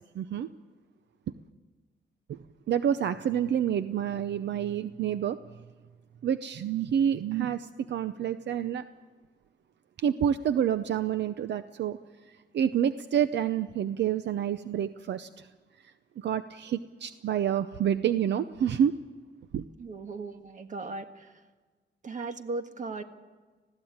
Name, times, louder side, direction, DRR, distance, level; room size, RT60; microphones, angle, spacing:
voice 1, 0.1-0.5 2.3-2.4 2.7-5.4 6.2-8.8 10.0-12.0 12.3-15.5 15.8-18.9 19.5-19.6, right 9 dB, 70° right, 12 dB, 0.7 m, -28 dB
voice 2, 19.8-21.4 22.0-23.0, right 3 dB, 45° right, 7 dB, 1.6 m, -37 dB
20.5 x 16.0 x 8.8 m, 1.4 s
cardioid pair, 115°, 19 cm